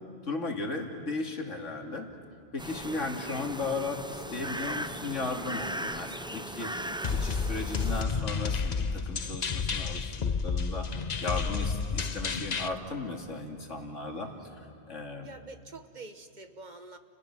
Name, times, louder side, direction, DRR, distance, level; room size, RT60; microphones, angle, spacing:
voice 1, 0.3-2.1 2.5-6.7 7.1-14.3 14.9-15.3, left 3 dB, 80° left, 2 dB, 2.8 m, -36 dB
sound 1, 2.6-8.0, right 1 dB, 5° right, 0.4 m, -38 dB
sound 2, 7.0-12.7, left 5 dB, 40° left, 0.8 m, -31 dB
voice 2, 15.2-17.0, right 3 dB, 40° right, 8 dB, 1.3 m, -46 dB
30.0 x 29.5 x 6.1 m, 2.3 s
omnidirectional pair, 1.3 m